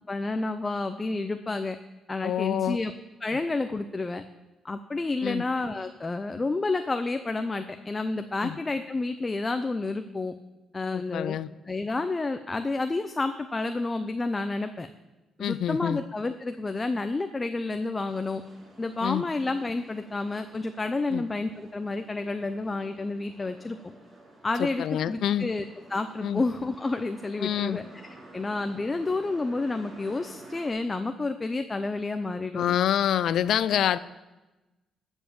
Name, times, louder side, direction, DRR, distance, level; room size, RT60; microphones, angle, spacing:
voice 1, 0.1-1.8 2.1-2.9 3.2-4.2 4.6-10.3 10.7-11.4 11.7-14.9 15.4-18.4 18.8-23.9 24.4-25.6 25.9-27.8 28.3-32.8, left 3 dB, 25° left, 8 dB, 0.6 m, -30 dB
voice 2, 2.2-2.8 5.2-5.4 8.4-8.6 10.9-11.5 15.4-16.0 19.0-19.2 21.1-21.2 24.6-25.5 26.2-26.4 27.4-27.8 32.5-34.0, left 10 dB, 70° left, 17 dB, 0.5 m, -27 dB
sound 1, 18.1-30.7, right 2 dB, 35° right, 3.5 m, -51 dB
13.5 x 5.4 x 7.1 m, 1.1 s
cardioid pair, 90°, 0 cm